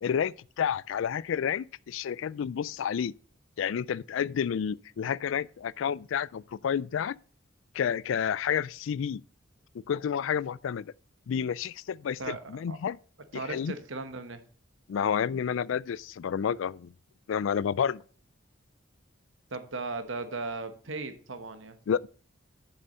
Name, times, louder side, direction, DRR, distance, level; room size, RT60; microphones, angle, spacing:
voice 1, 0.0-3.1 3.6-7.2 7.7-9.2 9.9-10.9 11.3-13.0 13.5-13.7 14.9-16.9 17.3-18.0 21.9-22.1, left 8 dB, 75° left, 0.3 m, -30 dB
voice 2, 12.2-12.8 13.3-14.4 19.5-21.8, right 3 dB, 70° right, 1.2 m, -37 dB
7.1 x 6.8 x 6.7 m
head